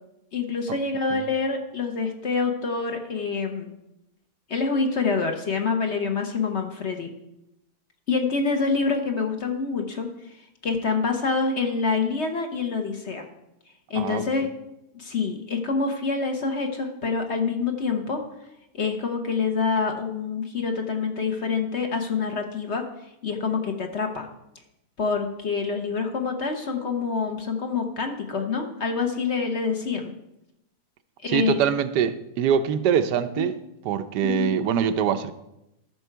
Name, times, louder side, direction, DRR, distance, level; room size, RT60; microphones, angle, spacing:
voice 1, 0.3-3.7 4.5-7.1 8.1-10.1 10.6-13.2 13.9-14.5 14.9-18.2 18.7-22.8 23.2-24.3 25.0-30.1 31.2-31.6 33.4-33.5 34.2-34.6, left 4 dB, 45° left, 1.2 m, -26 dB
voice 2, 31.3-33.5 33.8-35.3, right 8 dB, 85° right, 1.3 m, -23 dB
13.5 x 6.2 x 4.5 m
omnidirectional pair, 1.7 m